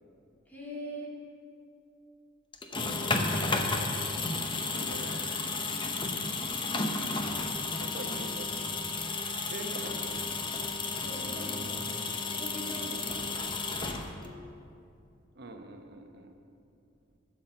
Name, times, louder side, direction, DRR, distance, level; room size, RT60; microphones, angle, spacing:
voice 1, 0.5-1.1 2.7-3.2 11.0-14.2, equal, 10° left, -5 dB, 2.4 m, -43 dB
sound 1, 2.5-14.4, left 3 dB, 25° left, 0.7 m, -33 dB
voice 2, 4.7-5.2 7.6-9.1 9.4-10.3 15.3-16.3, right 2 dB, 60° right, 4 dB, 1.0 m, -45 dB
12.0 x 5.9 x 7.6 m, 2.5 s
head